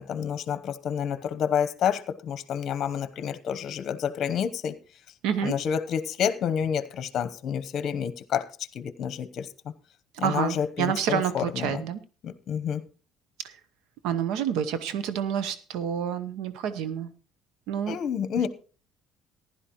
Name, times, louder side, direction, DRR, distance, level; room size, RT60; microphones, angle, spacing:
voice 1, 0.0-4.8 5.4-8.5 8.7-9.7 10.2-11.8 12.2-12.8 17.9-18.5, left 8 dB, 45° left, 0.9 m, -29 dB
voice 2, 5.2-5.5 10.2-12.0 14.0-17.1 17.7-18.0, right 9 dB, 80° right, 0.9 m, -28 dB
15.5 x 11.0 x 3.0 m
cardioid pair, 140°, 0 cm